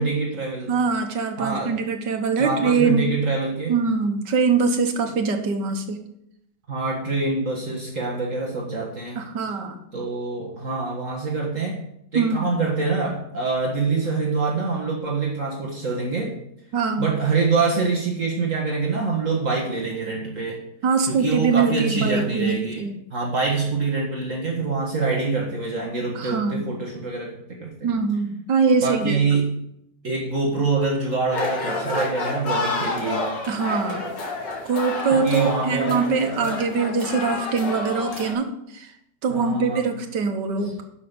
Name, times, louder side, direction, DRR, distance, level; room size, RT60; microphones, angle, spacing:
voice 1, 0.0-0.7 1.4-1.7 2.4-3.8 6.7-9.2 9.9-11.8 12.1-16.3 17.0-20.6 21.1-22.8 23.1-27.9 28.8-29.5 30.0-33.3 35.1-36.4 39.3-39.9, right 4 dB, 50° right, -2 dB, 1.9 m, -25 dB
voice 2, 0.7-3.1 3.7-6.0 9.2-9.8 12.2-12.5 16.7-17.1 20.8-23.0 26.2-26.7 27.8-29.4 33.5-34.1 34.7-38.9 39.2-40.8, right 5 dB, 85° right, 6 dB, 1.8 m, -23 dB
sound 1, 31.3-38.3, left 2 dB, 85° left, 2.4 m, -29 dB
11.0 x 6.1 x 5.2 m, 0.76 s
omnidirectional pair, 1.8 m